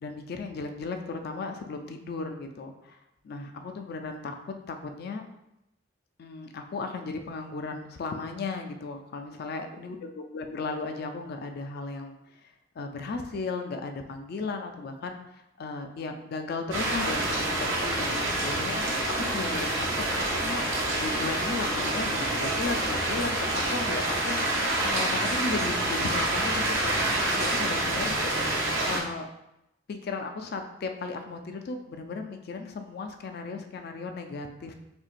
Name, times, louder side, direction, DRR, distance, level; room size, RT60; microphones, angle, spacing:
voice 1, 0.0-3.0 3.2-4.4 4.7-5.2 6.2-10.0 10.3-12.2 12.4-12.5 12.8-15.2 15.6-19.0 19.3-20.0 20.4-20.6 21.0-26.9 27.3-28.2 28.9-29.3 29.9-34.7, left 3 dB, 55° left, 6 dB, 0.4 m, -35 dB
sound 1, 16.7-29.0, right 1 dB, 80° right, 0.9 m, -27 dB
4.4 x 2.8 x 2.4 m, 0.87 s
head